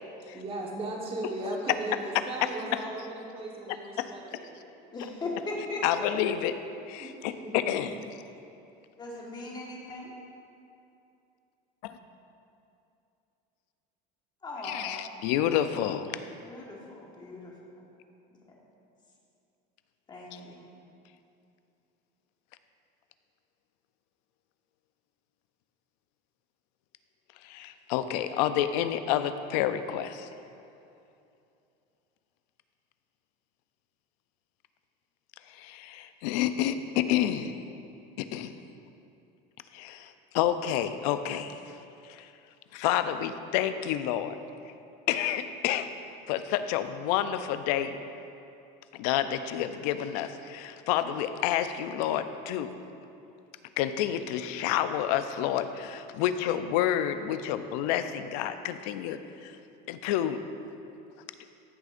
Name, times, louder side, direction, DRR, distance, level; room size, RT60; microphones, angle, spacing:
voice 1, 0.3-4.6 7.0-7.1 7.4-7.7, right 2 dB, 25° right, -2 dB, 1.4 m, -37 dB
voice 2, 4.9-6.1 9.0-10.1 14.4-15.0 16.4-17.5 20.1-20.6, left 2 dB, 20° left, -3 dB, 1.5 m, -38 dB
voice 3, 5.8-6.5 6.9-8.0 11.8-12.0 14.6-16.2 27.4-30.3 35.5-37.5 38.2-38.5 39.7-41.6 42.0-42.3 42.7-44.4 45.1-45.9 46.3-48.0 49.0-52.7 53.8-59.5 59.9-60.4, left 11 dB, 80° left, 10 dB, 0.5 m, -29 dB
14.0 x 6.4 x 2.5 m, 2.7 s
cardioid pair, 140°, 20 cm